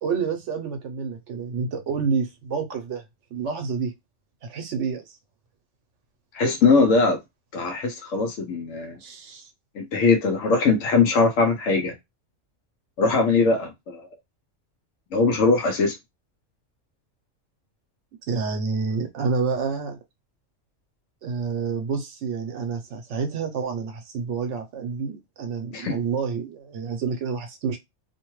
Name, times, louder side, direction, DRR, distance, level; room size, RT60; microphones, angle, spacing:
voice 1, 0.0-3.0 3.3-3.9 4.5-5.2 9.0-9.5 18.3-20.0 21.2-27.8, right 5 dB, 70° right, 1.0 m, -28 dB
voice 2, 6.3-7.2 7.5-9.0 9.7-11.9 13.0-14.1 15.1-15.9 25.7-26.0, left 4 dB, 80° left, 1.0 m, -21 dB
2.7 x 2.2 x 3.0 m
omnidirectional pair, 1.3 m